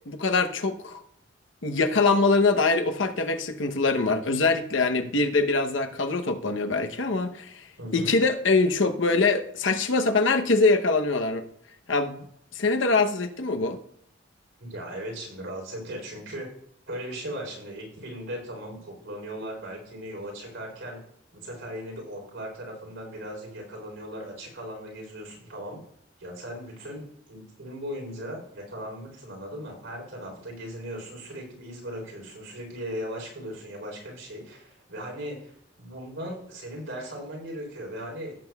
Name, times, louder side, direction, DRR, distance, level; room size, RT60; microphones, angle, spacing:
voice 1, 0.1-1.0 1.6-7.6 7.9-11.4 11.9-12.3 12.5-13.8, left 3 dB, 75° left, 6 dB, 0.9 m, -23 dB
voice 2, 7.8-8.1 14.6-16.5 16.9-21.0 21.3-25.8 26.2-35.5 35.8-38.3, equal, 90° right, 0 dB, 3.9 m, -38 dB
17.0 x 7.7 x 2.4 m, 0.70 s
head